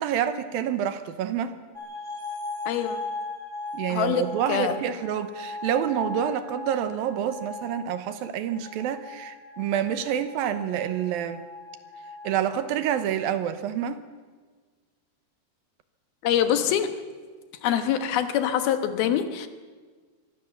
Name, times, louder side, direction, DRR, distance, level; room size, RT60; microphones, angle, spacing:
voice 1, 0.0-1.6 3.7-11.5 12.2-14.0, right 9 dB, 75° right, 11 dB, 2.6 m, -28 dB
sound 1, 1.7-12.8, left 3 dB, 15° right, 4.6 m, -39 dB
voice 2, 2.7-3.0 3.9-4.7 16.2-17.0 17.6-19.5, left 9 dB, 75° left, 9 dB, 3.0 m, -25 dB
23.0 x 15.5 x 7.3 m, 1.5 s
omnidirectional pair, 4.5 m